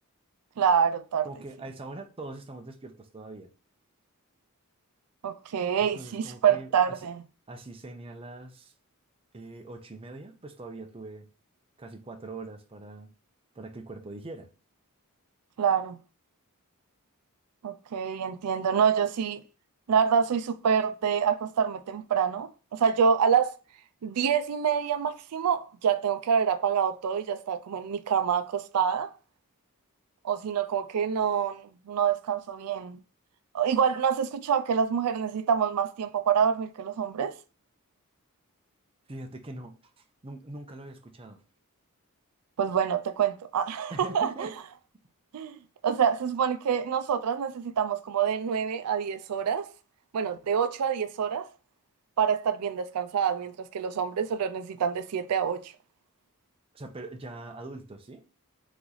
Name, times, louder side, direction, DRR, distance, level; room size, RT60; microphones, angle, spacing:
voice 1, 0.6-1.3 5.2-7.2 15.6-16.0 17.6-19.4 19.9-23.5 24.0-29.1 30.2-33.0 33.5-37.3 42.6-44.5 45.3-45.6 45.8-49.7 50.1-51.5 52.2-55.7, right 7 dB, 90° right, 0.4 m, -26 dB
voice 2, 1.2-3.5 5.8-7.0 7.5-8.7 9.3-11.3 11.8-13.1 13.5-14.5 39.1-41.4 43.9-44.5 56.7-58.2, right 2 dB, 25° right, 0.6 m, -42 dB
4.0 x 3.1 x 3.8 m
head